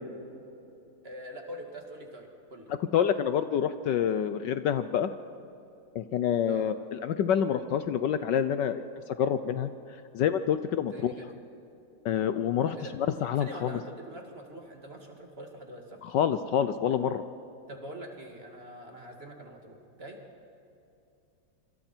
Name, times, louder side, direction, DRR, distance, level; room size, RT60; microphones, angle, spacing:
voice 1, 1.0-2.7 6.5-6.7 10.9-11.4 12.6-12.9 13.4-16.0 17.7-20.2, right 1 dB, 30° right, 2 dB, 2.4 m, -44 dB
voice 2, 2.9-5.1 5.9-8.8 9.2-9.7 10.1-11.1 12.0-13.8 16.0-17.2, left 9 dB, 70° left, 11 dB, 1.3 m, -27 dB
26.5 x 25.5 x 4.5 m, 2.7 s
omnidirectional pair, 2.2 m